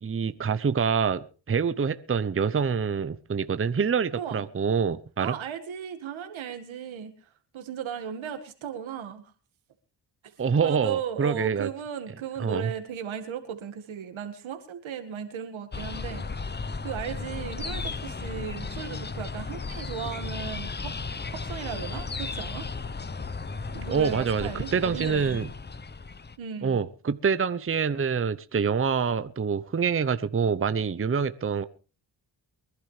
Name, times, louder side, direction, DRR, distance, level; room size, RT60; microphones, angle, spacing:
voice 1, 0.0-5.3 10.4-11.7 12.4-12.7 23.9-25.5 26.6-31.6, right 6 dB, 30° right, 13 dB, 0.8 m, -26 dB
voice 2, 5.2-9.3 10.2-10.3 10.6-16.3 16.8-20.9 21.3-22.7 23.7-25.4 26.4-26.8, right 8 dB, 80° right, 6 dB, 2.0 m, -36 dB
sound 1, 15.7-26.4, left 4 dB, 20° left, 0.9 m, -35 dB
23.5 x 11.5 x 3.3 m, 0.35 s
supercardioid pair, 55°, 47 cm